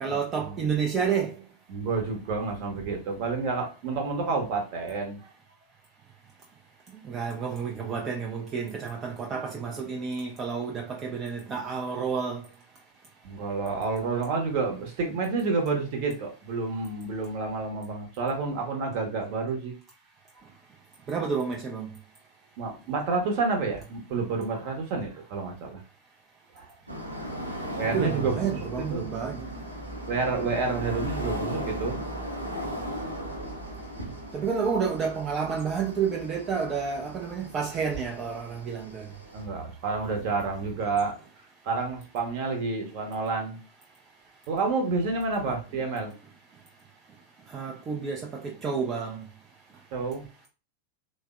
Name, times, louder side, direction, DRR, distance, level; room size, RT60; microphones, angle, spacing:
voice 1, 0.0-1.4 7.0-12.4 21.1-21.9 27.9-29.5 34.3-39.1 45.5-45.6 47.5-49.3, right 6 dB, 25° right, 0.4 m, -30 dB
voice 2, 1.7-5.2 13.2-19.7 22.6-25.8 26.5-26.7 27.8-29.1 30.1-32.0 39.3-41.1 41.6-43.6 44.5-46.1 49.9-50.2, right 4 dB, 45° right, 0.8 m, -29 dB
sound 1, 26.9-39.4, equal, 85° right, 0.6 m, -37 dB
3.2 x 2.0 x 2.4 m
figure-of-eight pair, 90°, 0 cm